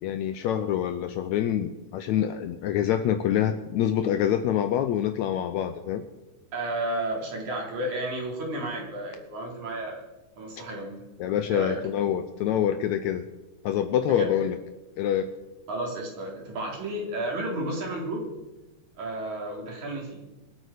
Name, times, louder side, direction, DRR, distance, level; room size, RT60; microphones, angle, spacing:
voice 1, 0.0-6.0 11.2-13.3 13.6-14.6 15.0-15.3, left 10 dB, 75° left, 9 dB, 1.8 m, -26 dB
voice 2, 6.5-10.0 10.4-11.0 11.5-11.8 14.1-14.3 15.7-18.2 19.0-20.3, right 1 dB, 65° right, -1 dB, 4.9 m, -32 dB
25.5 x 8.7 x 5.0 m, 1.1 s
omnidirectional pair, 3.6 m